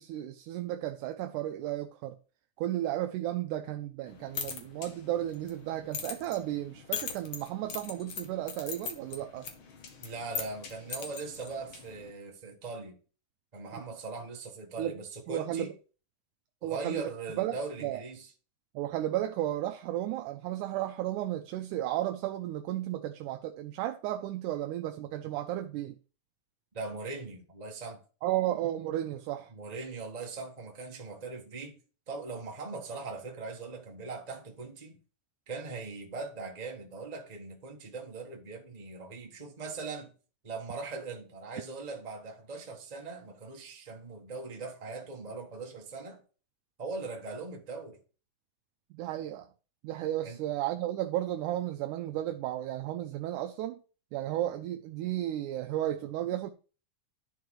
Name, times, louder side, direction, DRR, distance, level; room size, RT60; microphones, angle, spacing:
voice 1, 0.0-2.2 2.6-9.5 13.7-13.8 14.8-15.0 15.3-15.7 16.6-17.1 17.4-17.6 17.8-18.0 18.8-26.0 28.2-29.5 48.9-49.5 49.8-53.8 54.1-56.5, right 13 dB, 85° right, 2.1 m, -33 dB
sound 1, 4.1-12.1, left 6 dB, 55° left, 1.7 m, -41 dB
voice 2, 10.0-12.9 13.5-15.7 16.6-18.3 26.7-28.0 29.5-31.8 32.1-35.0 35.5-40.1 40.4-46.2 46.8-48.0 50.2-50.4, right 3 dB, 65° right, 0.4 m, -40 dB
11.0 x 4.7 x 4.8 m
omnidirectional pair, 3.5 m